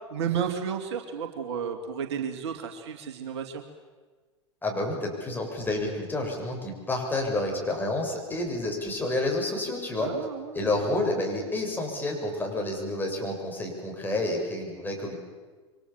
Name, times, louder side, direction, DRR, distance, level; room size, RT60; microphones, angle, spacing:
voice 1, 0.1-3.6 10.0-10.8, right 7 dB, 60° right, 5 dB, 2.6 m, -32 dB
voice 2, 4.6-10.1 10.5-15.1, left 2 dB, 10° left, 0 dB, 7.5 m, -29 dB
28.5 x 24.5 x 7.5 m, 1.4 s
figure-of-eight pair, 85°, 16 cm